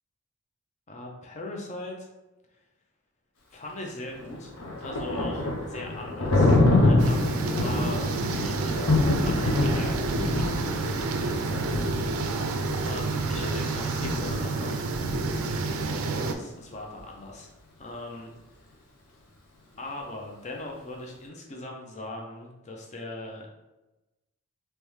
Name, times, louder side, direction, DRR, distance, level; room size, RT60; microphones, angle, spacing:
voice 1, 0.9-2.1 3.5-4.5 4.8-12.0 12.8-15.0 16.1-17.5 17.8-18.3 19.8-23.5, left 2 dB, 30° left, 0 dB, 0.6 m, -40 dB
Thunder, 4.1-15.9, left 2 dB, 75° left, 0.8 m, -26 dB
sound 1, 7.0-16.3, right 3 dB, 70° right, 0.4 m, -29 dB
3.4 x 3.1 x 3.2 m, 1.0 s
head